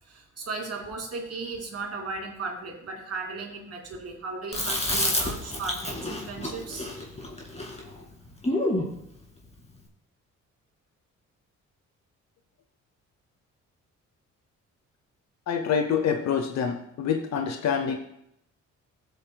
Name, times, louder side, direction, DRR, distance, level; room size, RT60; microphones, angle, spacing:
voice 1, 0.0-6.9, right 4 dB, 55° right, 0 dB, 2.7 m, -36 dB
Chewing mastication, 4.5-8.9, left 1 dB, 20° left, 2.4 m, -29 dB
voice 2, 15.5-18.0, left 7 dB, 60° left, 6 dB, 0.9 m, -26 dB
15.0 x 8.0 x 2.3 m, 0.77 s
cardioid pair, 90°, 30 cm